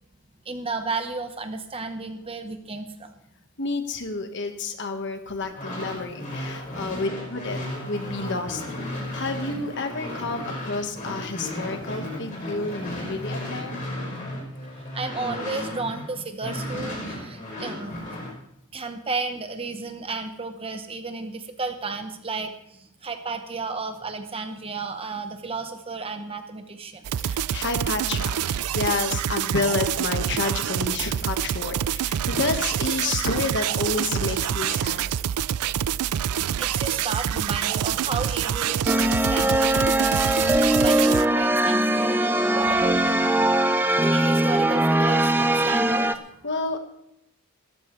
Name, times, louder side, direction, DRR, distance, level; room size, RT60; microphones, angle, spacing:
voice 1, 0.4-3.1 14.9-18.0 18.7-27.1 36.5-40.2 40.8-42.2 42.5-43.5 44.0-46.2, right 4 dB, 25° right, 7 dB, 1.0 m, -33 dB
voice 2, 3.6-7.6 7.9-13.8 27.2-35.2 46.4-46.8, left 3 dB, 55° left, 6 dB, 1.4 m, -30 dB
sound 1, 5.4-16.1 16.4-18.3, left 1 dB, 35° left, 5.0 m, -34 dB
sound 2, 27.0-41.3, right 9 dB, 85° right, 0.4 m, -26 dB
sound 3, 38.9-46.2, right 1 dB, 10° right, 0.5 m, -21 dB
17.5 x 14.0 x 3.2 m, 0.78 s
head